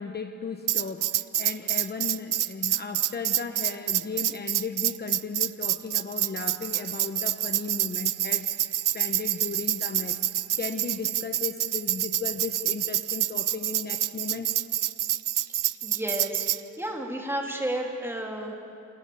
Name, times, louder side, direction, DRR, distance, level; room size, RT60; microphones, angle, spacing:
voice 1, 0.0-10.2 10.6-14.5, left 4 dB, 30° left, 6 dB, 1.0 m, -36 dB
Tambourine, 0.7-16.6, right 12 dB, 90° right, 0.6 m, -27 dB
voice 2, 15.5-16.4 16.8-18.5, right 1 dB, 10° right, 0 dB, 3.1 m, -32 dB
29.0 x 28.0 x 7.1 m, 2.6 s
wide cardioid pair, 155°, 31 cm